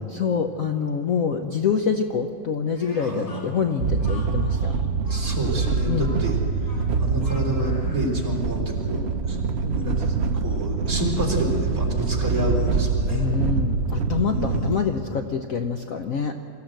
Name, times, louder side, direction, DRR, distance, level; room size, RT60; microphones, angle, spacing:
voice 1, 0.1-4.7 5.9-6.1 13.1-16.4, left 6 dB, 60° left, 5 dB, 1.0 m, -26 dB
Speech, 2.7-8.1, left 1 dB, 85° left, 5.8 m, -45 dB
voice 2, 3.0-3.4 5.1-6.4 7.0-9.4 9.6-10.1 10.4-13.2 14.3-15.0, right 1 dB, 45° right, -2 dB, 4.1 m, -29 dB
sound 1, 3.8-14.8, right 4 dB, 70° right, 0.6 m, -25 dB
24.5 x 14.5 x 7.9 m, 2.6 s
omnidirectional pair, 2.0 m